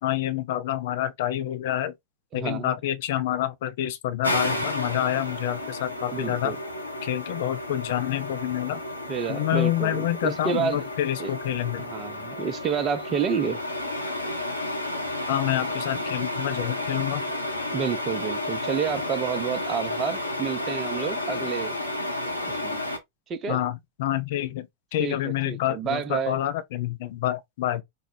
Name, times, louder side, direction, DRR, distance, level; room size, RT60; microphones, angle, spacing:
voice 1, 0.0-1.9 2.3-6.5 7.0-8.8 9.3-11.8 15.3-17.2 23.5-27.8, left 13 dB, 55° left, 0.5 m, -27 dB
voice 2, 2.3-2.7 6.1-6.6 9.1-10.8 11.2-11.3 11.8-13.6 17.7-21.8 22.5-22.8 23.3-23.6 25.0-25.2 25.5-26.4, right 7 dB, 30° right, 0.6 m, -29 dB
sound 1, 4.2-23.0, left 1 dB, 85° left, 0.8 m, -32 dB
4.5 x 2.1 x 3.1 m
figure-of-eight pair, 90°, 0 cm